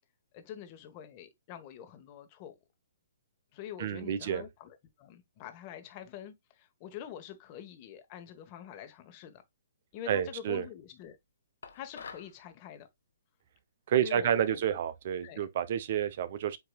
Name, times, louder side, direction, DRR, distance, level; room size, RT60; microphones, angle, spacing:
voice 1, 0.3-2.5 3.5-9.4 9.9-11.2 11.7-12.9 14.0-14.8 15.2-15.5, left 10 dB, 35° left, 1.2 m, -46 dB
voice 2, 3.8-4.4 10.1-10.7 13.9-16.6, right 9 dB, 55° right, 0.7 m, -29 dB
sound 1, 11.6-12.4, left 5 dB, 80° left, 0.9 m, -46 dB
8.0 x 2.9 x 2.3 m
hypercardioid pair, 140°, 0 cm